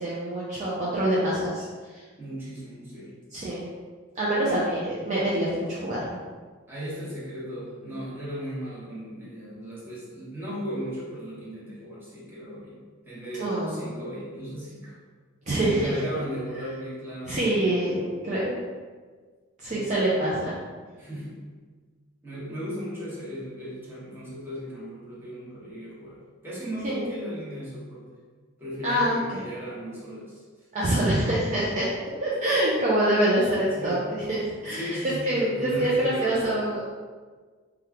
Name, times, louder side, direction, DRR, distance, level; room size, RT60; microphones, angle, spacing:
voice 1, 0.0-2.0 3.3-3.7 4.1-6.0 13.4-13.9 15.5-16.0 16.6-16.7 17.3-18.6 19.6-20.5 26.8-27.1 28.8-29.4 30.7-31.9 32.2-36.8, right 1 dB, 35° right, -7 dB, 0.5 m, -25 dB
voice 2, 2.2-3.1 4.4-4.6 6.7-12.8 13.1-14.9 15.6-17.6 19.7-20.0 21.0-21.4 22.2-28.1 28.6-30.4 33.8-34.0 34.6-36.6, equal, 10° right, -9 dB, 1.0 m, -36 dB
3.0 x 2.3 x 3.4 m, 1.5 s
head